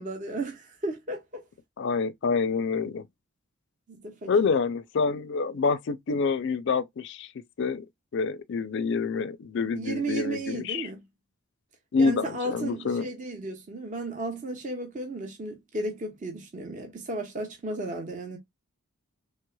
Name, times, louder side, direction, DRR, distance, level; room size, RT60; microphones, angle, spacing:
voice 1, 0.0-1.4 3.9-4.3 9.8-11.0 12.0-18.4, right 2 dB, 35° right, 0.7 m, -34 dB
voice 2, 1.8-3.1 4.3-7.3 7.6-7.9 8.1-10.9 11.9-13.1, left 4 dB, 55° left, 0.4 m, -27 dB
3.2 x 3.1 x 2.2 m
head